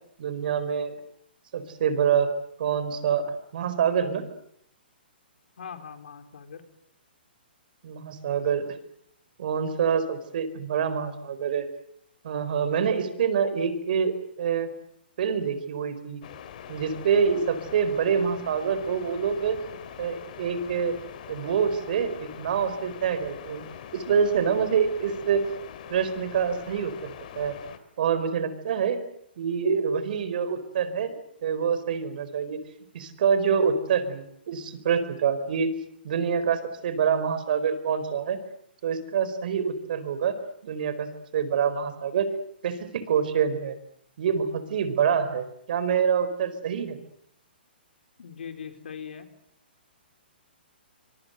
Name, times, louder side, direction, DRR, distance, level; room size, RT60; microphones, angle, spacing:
voice 1, 0.2-0.9 1.5-2.3 2.6-4.2 7.8-8.7 9.4-11.7 12.2-14.7 15.2-16.2 16.7-19.6 20.0-20.9 21.3-23.6 23.9-25.4 25.9-27.6 28.0-29.0 29.4-31.2 31.4-32.6 32.9-35.7 36.0-38.4 38.8-40.4 40.6-42.3 42.6-43.8 44.2-47.0, right 7 dB, 55° right, 12 dB, 4.4 m, -26 dB
voice 2, 5.6-6.6 48.2-49.3, left 7 dB, 75° left, 7 dB, 4.1 m, -40 dB
sound 1, 16.2-27.8, left 9 dB, 50° left, 3.0 m, -43 dB
25.5 x 23.5 x 7.9 m, 0.72 s
hypercardioid pair, 155°, 6 cm